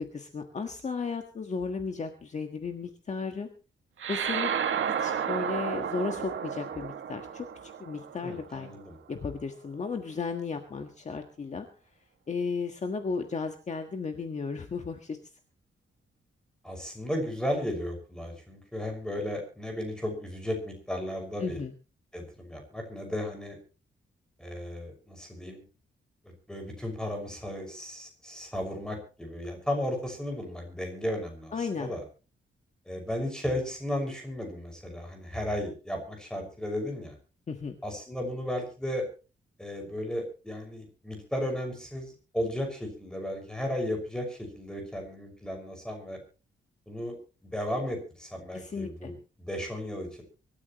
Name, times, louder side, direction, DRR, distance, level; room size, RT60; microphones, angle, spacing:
voice 1, 0.0-3.5 4.1-4.5 4.8-8.7 9.1-11.7 12.3-15.2 21.4-21.7 31.5-31.9 37.5-37.8 48.5-49.1, left 5 dB, 35° left, 5 dB, 1.6 m, -34 dB
sound 1, 4.0-8.7, right 8 dB, 80° right, 2.0 m, -32 dB
voice 2, 8.2-9.0 16.6-21.6 22.1-23.6 24.4-25.6 26.2-32.0 32.9-37.1 37.8-39.1 39.6-46.2 46.9-47.2 47.5-50.2, left 1 dB, 5° left, 3 dB, 6.0 m, -34 dB
24.5 x 13.5 x 3.1 m, 0.35 s
wide cardioid pair, 170°, 20 cm